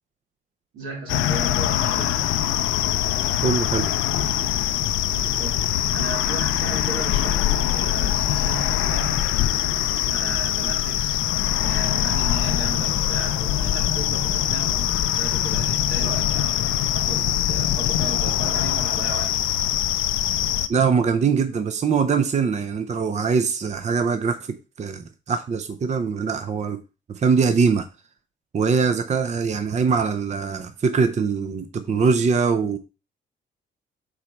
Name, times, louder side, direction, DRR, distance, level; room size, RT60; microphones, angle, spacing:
voice 1, 0.7-2.1 5.1-9.2 10.1-11.2 11.6-19.5, right 2 dB, 90° right, 3.4 m, -35 dB
sound 1, 1.1-20.7, left 12 dB, 90° left, 0.5 m, -23 dB
voice 2, 3.4-3.9 20.7-26.8 27.1-27.9 28.5-32.8, right 5 dB, 35° right, 0.6 m, -22 dB
4.8 x 4.2 x 5.8 m
cardioid pair, 90°, 20 cm